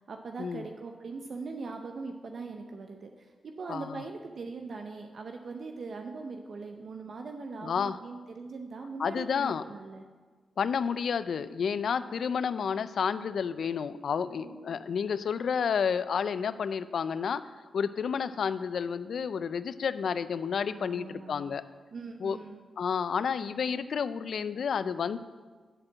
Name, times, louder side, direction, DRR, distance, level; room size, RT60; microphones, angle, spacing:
voice 1, 0.0-10.0 14.4-15.3 20.7-21.6 21.9-22.6, right 4 dB, 60° right, 4 dB, 0.7 m, -41 dB
voice 2, 3.7-4.0 7.6-8.0 9.0-9.6 10.6-17.4 17.7-21.6 22.2-22.4 22.8-25.2, left 6 dB, 70° left, 14 dB, 0.4 m, -30 dB
10.0 x 4.4 x 7.5 m, 1.4 s
cardioid pair, 60°, 0 cm